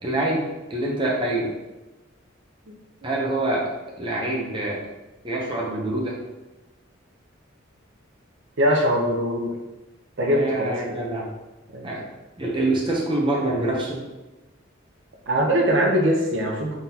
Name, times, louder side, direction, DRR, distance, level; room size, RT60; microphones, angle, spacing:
voice 1, 0.0-1.5 3.0-3.7 4.0-4.8 5.2-6.2 10.3-11.3 11.8-12.1 12.4-14.0, right 2 dB, 25° right, -3 dB, 0.6 m, -25 dB
voice 2, 8.6-9.6 10.2-11.0 11.7-11.9 15.3-16.8, equal, 60° right, 1 dB, 0.7 m, -22 dB
3.9 x 3.9 x 2.8 m, 1.1 s
head